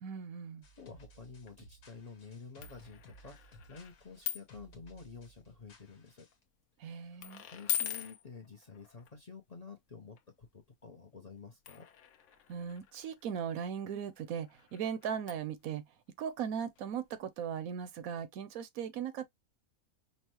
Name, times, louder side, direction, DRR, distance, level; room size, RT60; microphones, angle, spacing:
voice 1, 0.0-0.6 6.8-7.4 12.5-15.8 16.2-19.3, right 8 dB, 75° right, 1.1 m, -38 dB
sound 1, 0.6-6.4, right 1 dB, 85° left, 1.6 m, -58 dB
voice 2, 0.8-6.3 6.9-11.9, left 5 dB, 35° left, 0.6 m, -51 dB
sound 2, 1.1-1.2 1.4-1.5 2.6-4.6 5.0-5.4 6.0-6.3 7.2-9.1 10.2-10.3 11.6-17.2 17.4-17.5 17.9-18.0, left 11 dB, 65° left, 1.0 m, -42 dB
5.4 x 2.2 x 3.0 m
omnidirectional pair, 1.5 m